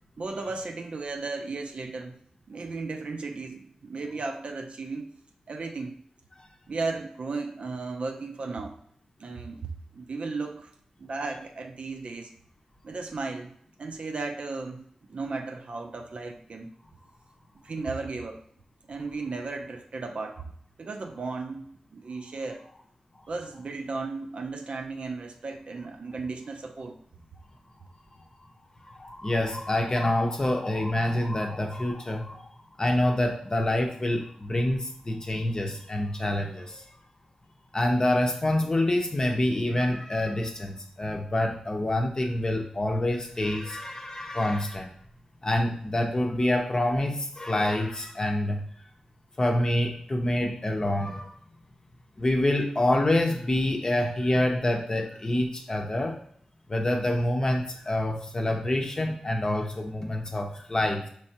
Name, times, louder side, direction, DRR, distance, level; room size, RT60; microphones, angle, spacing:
voice 1, 0.2-2.2 2.5-5.1 5.5-5.9 6.7-8.8 9.2-10.7 11.0-12.3 12.8-14.8 15.1-16.7 17.6-18.4 18.9-20.5 20.8-22.6 23.3-27.0, right 3 dB, 60° right, 5 dB, 0.5 m, -35 dB
voice 2, 28.8-32.5 32.8-36.8 37.7-44.9 45.4-48.6 49.4-51.3 52.2-56.2 56.7-61.1, left 1 dB, 30° left, 2 dB, 0.7 m, -26 dB
4.6 x 3.2 x 2.9 m, 0.62 s
wide cardioid pair, 95°, 2 cm